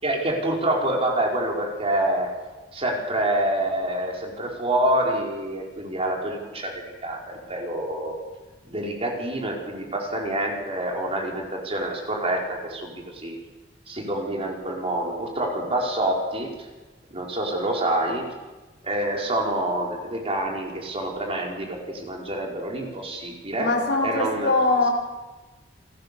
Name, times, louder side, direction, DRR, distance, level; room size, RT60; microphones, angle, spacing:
voice 1, 0.0-2.3 2.7-6.7 7.0-8.1 8.6-13.3 13.9-16.5 17.1-18.2 18.8-23.7 24.0-24.5, right 1 dB, 35° right, -1 dB, 4.7 m, -27 dB
voice 2, 23.5-24.9, left 2 dB, 65° left, 2 dB, 5.1 m, -22 dB
29.0 x 17.0 x 6.9 m, 1.2 s
head